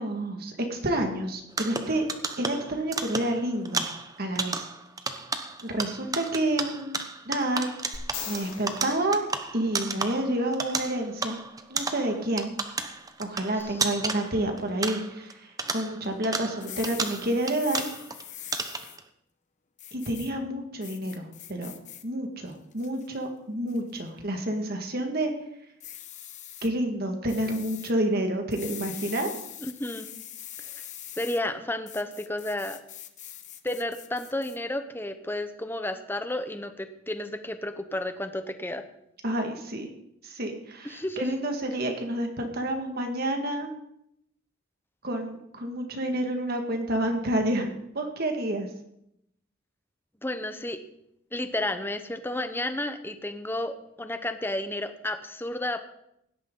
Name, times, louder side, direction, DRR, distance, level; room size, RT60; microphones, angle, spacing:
voice 1, 0.0-2.1 2.4-3.9 4.2-4.6 5.6-6.9 7.3-7.7 8.3-9.2 9.5-11.4 11.7-12.5 13.2-15.4 15.7-17.8 19.9-21.7 22.0-25.3 26.6-29.3 39.2-39.9 40.2-43.7 45.0-48.7, right 1 dB, 50° right, 3 dB, 1.9 m, -29 dB
sound 1, 1.5-15.3 15.6-18.2 18.5-19.0, right 4 dB, 20° right, 0.9 m, -33 dB
sound 2, 7.9-10.2 13.6-13.7, left 6 dB, 70° left, 4.5 m, -41 dB
sound 3, 16.5-19.0 19.8-20.3 20.8-22.0 22.5-23.1 23.7-24.0 25.8-26.7 27.3-27.9 28.5-31.4 31.9-34.6, left 11 dB, 40° left, 0.9 m, -43 dB
voice 2, 29.7-30.1 30.7-30.8 31.2-32.8 33.6-38.8 40.8-41.3 50.2-50.8 51.3-55.8, left 1 dB, 10° left, 9 dB, 0.9 m, -32 dB
17.0 x 12.0 x 3.9 m, 0.78 s
head